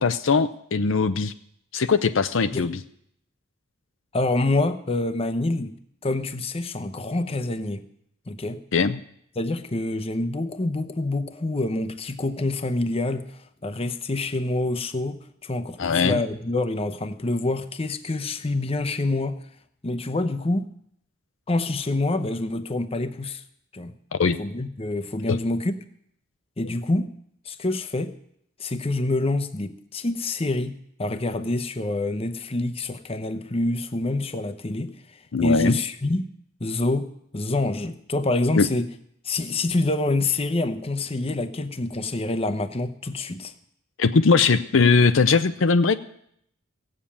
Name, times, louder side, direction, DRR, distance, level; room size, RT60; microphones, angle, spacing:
voice 1, 0.0-1.3 1.7-2.8 8.7-9.0 15.8-16.2 24.2-24.4 25.3-25.4 35.3-35.8 38.6-38.7 44.0-46.0, left 4 dB, 65° left, 11 dB, 0.6 m, -20 dB
voice 2, 4.1-5.7 6.0-7.8 8.3-8.6 9.4-19.4 19.8-20.7 21.5-23.4 23.7-23.9 24.4-25.8 26.6-27.1 27.5-28.1 28.6-34.9 35.4-36.3 36.6-38.9 39.2-43.5, left 2 dB, 30° left, 10 dB, 0.8 m, -26 dB
16.5 x 7.5 x 8.6 m, 0.71 s
head